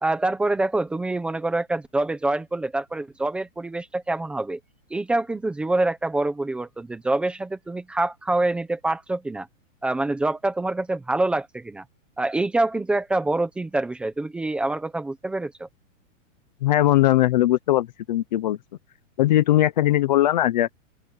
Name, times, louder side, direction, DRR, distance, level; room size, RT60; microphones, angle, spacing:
voice 1, 0.0-4.6 4.9-9.5 9.8-11.8 12.2-15.7, right 2 dB, 5° right, 1.0 m, -26 dB
voice 2, 16.6-18.6 19.2-20.7, left 14 dB, 35° left, 0.9 m, -20 dB
open air
supercardioid pair, 180°, 40 cm